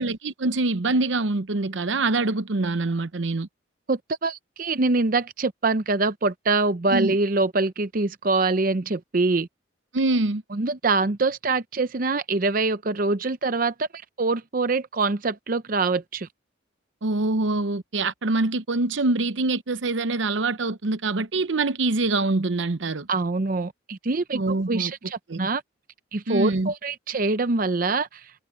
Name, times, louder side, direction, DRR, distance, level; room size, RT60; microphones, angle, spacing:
voice 1, 0.0-3.5 6.9-7.2 9.9-10.4 17.0-23.1 24.3-24.9 25.3-25.5 26.3-26.7, right 2 dB, 75° right, 0.8 m, -24 dB
voice 2, 3.9-9.5 10.5-16.3 23.1-24.4 24.7-25.6 26.1-28.2, right 3 dB, 45° right, 0.6 m, -24 dB
head